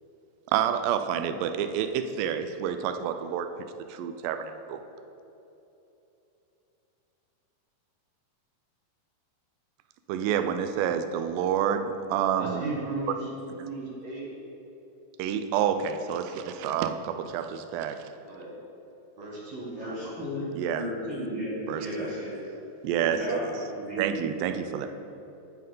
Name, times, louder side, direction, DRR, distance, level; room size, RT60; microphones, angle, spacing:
voice 1, 0.5-3.5 3.9-4.8 10.1-12.7 15.2-18.0 20.6-20.8 21.7-22.1 22.8-23.4 24.0-24.9, right 8 dB, 85° right, 8 dB, 2.3 m, -28 dB
voice 2, 12.3-14.3 16.2-16.6 18.2-18.5 19.2-20.6, right 2 dB, 60° right, -3 dB, 1.9 m, -37 dB
voice 3, 19.8-20.4 20.7-22.4 23.0-24.1, equal, 40° right, -9 dB, 2.2 m, -34 dB
14.0 x 5.5 x 3.8 m, 3.0 s
omnidirectional pair, 4.0 m